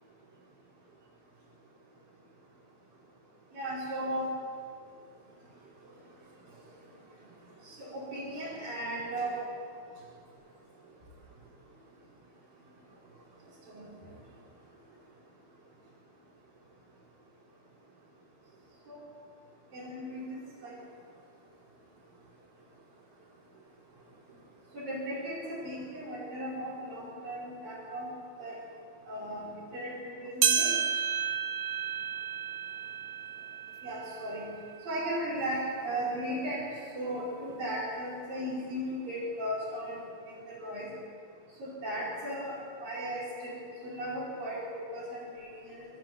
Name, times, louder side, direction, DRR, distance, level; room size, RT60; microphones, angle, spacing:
voice 1, 3.5-4.3 7.6-9.4 13.7-13.9 18.9-19.0 19.7-20.8 24.7-28.1 28.4-28.6 29.1-30.7 33.8-34.5 34.9-36.7 36.9-40.0 40.3-40.9 41.6-42.6 42.8-43.5 43.8-45.9, right 1 dB, 55° right, -8 dB, 6.8 m, -36 dB
sound 1, 30.4-35.1 35.6-35.7 36.5-36.6 37.5-37.6, right 8 dB, 85° right, 4.0 m, -31 dB
26.0 x 14.0 x 9.3 m, 2.3 s
omnidirectional pair, 4.9 m